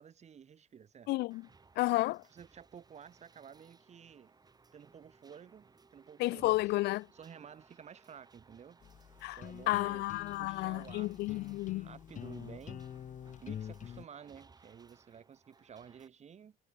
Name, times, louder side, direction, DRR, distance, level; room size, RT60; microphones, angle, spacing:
voice 1, 0.0-1.1 2.1-4.3 4.7-6.7 7.1-8.8 9.4-10.1 10.4-11.4 11.8-12.9 13.4-16.6, right 7 dB, 40° right, 2.8 m, -53 dB
voice 2, 1.1-1.5 1.8-2.2 6.2-7.1 9.2-9.4 9.7-11.9, left 19 dB, 80° left, 0.5 m, -32 dB
sound 1, 1.3-16.1, right 4 dB, 25° right, 4.8 m, -63 dB
sound 2, 8.8-14.0, left 9 dB, 50° left, 2.1 m, -46 dB
cardioid pair, 110°, 17 cm